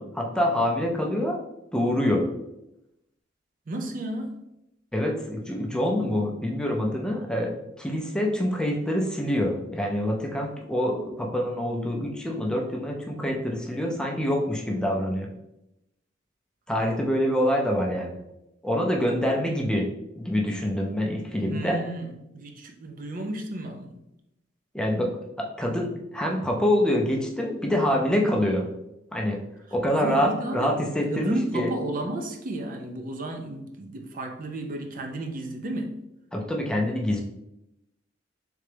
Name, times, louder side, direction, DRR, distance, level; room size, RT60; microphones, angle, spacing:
voice 1, 0.0-1.4 1.7-2.3 4.9-15.3 16.7-18.1 18.6-19.9 20.2-21.8 24.7-28.7 29.1-29.4 29.7-31.7 36.3-37.2, equal, 5° left, 0 dB, 0.5 m, -26 dB
voice 2, 3.7-4.4 21.4-24.0 29.7-30.8 31.1-35.9, right 1 dB, 45° right, 4 dB, 0.5 m, -33 dB
3.8 x 3.3 x 3.4 m, 0.87 s
head